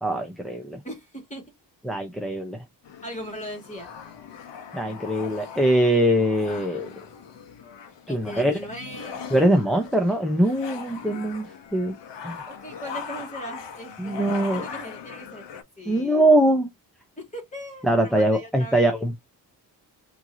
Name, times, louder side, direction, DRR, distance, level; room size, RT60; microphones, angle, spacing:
voice 1, 0.0-0.8 1.8-2.6 4.7-6.9 8.1-8.6 9.3-11.9 12.2-12.4 14.0-14.7 15.9-16.7 17.8-19.2, right 1 dB, ahead, 0.7 m, -22 dB
voice 2, 0.8-1.4 3.0-3.9 8.1-9.4 12.5-14.2 14.5-16.2 17.2-18.9, equal, 15° left, 2.4 m, -39 dB
sound 1, 2.8-15.6, left 6 dB, 80° left, 1.0 m, -40 dB
4.4 x 3.0 x 2.7 m
wide cardioid pair, 130°, 42 cm